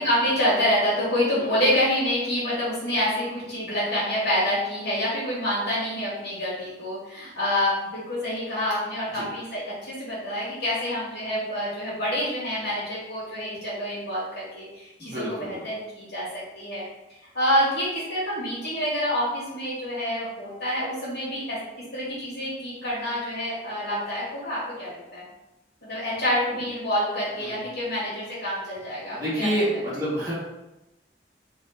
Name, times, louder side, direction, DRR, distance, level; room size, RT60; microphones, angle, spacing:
voice 1, 0.0-16.8 17.3-21.6 21.9-25.2 25.8-29.5, equal, 80° left, -9 dB, 1.5 m, -27 dB
voice 2, 1.4-1.7 9.1-9.3 15.0-15.6 26.5-26.6 27.4-27.6 29.1-30.3, equal, 20° right, -9 dB, 1.5 m, -28 dB
3.1 x 3.0 x 3.4 m, 0.94 s
head